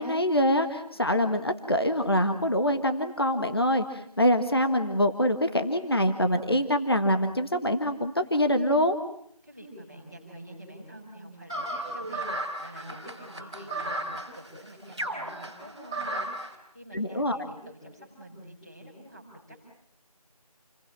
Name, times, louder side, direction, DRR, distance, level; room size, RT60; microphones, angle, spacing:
voice 1, 0.0-9.0 16.9-17.4, equal, 40° left, 7 dB, 1.5 m, -25 dB
voice 2, 9.4-19.6, right 1 dB, 10° left, -6 dB, 5.7 m, -47 dB
sound 1, 11.5-16.5, right 1 dB, 10° right, 2.7 m, -34 dB
29.0 x 23.0 x 8.8 m, 0.68 s
figure-of-eight pair, 175°, 20 cm